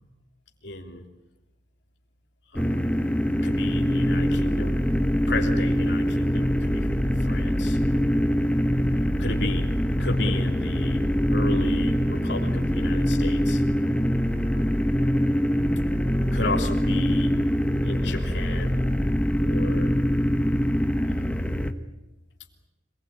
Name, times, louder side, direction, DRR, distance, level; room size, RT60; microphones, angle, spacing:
voice 1, 0.6-1.1 2.5-2.9 3.4-4.8 5.3-7.8 9.2-9.7 10.0-13.6 16.3-17.3 17.8-18.8 19.4-19.9 21.3-21.4, left 2 dB, 70° left, 2 dB, 3.2 m, -34 dB
sound 1, 2.5-21.7, equal, 5° left, 1.3 m, -23 dB
26.5 x 20.0 x 8.8 m, 0.98 s
head